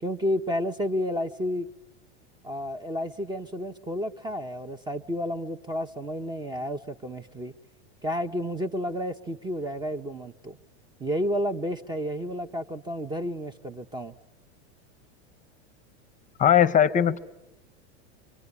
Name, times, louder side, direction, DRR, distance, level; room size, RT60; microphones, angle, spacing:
voice 1, 0.0-1.7 2.4-7.5 8.0-10.6 11.0-14.1, equal, 15° right, 10 dB, 0.9 m, -31 dB
voice 2, 16.4-17.2, left 9 dB, 25° left, 11 dB, 0.9 m, -19 dB
26.0 x 23.0 x 9.8 m, 0.93 s
supercardioid pair, 125°, 33 cm